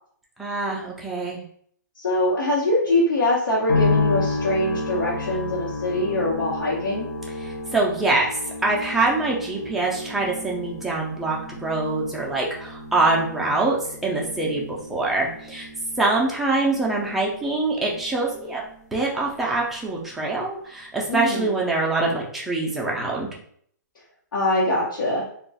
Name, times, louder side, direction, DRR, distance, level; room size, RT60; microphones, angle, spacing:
voice 1, 0.4-1.4 7.4-15.7 16.0-18.6 18.9-23.3, right 2 dB, ahead, -3 dB, 0.3 m, -24 dB
voice 2, 2.0-7.1 21.1-21.5 24.3-25.2, left 1 dB, 85° left, -7 dB, 1.0 m, -23 dB
sound 1, 3.7-18.9 19.2-20.1, left 3 dB, 60° left, 0.8 m, -31 dB
2.3 x 2.3 x 3.9 m, 0.63 s
hypercardioid pair, 160°, 10 cm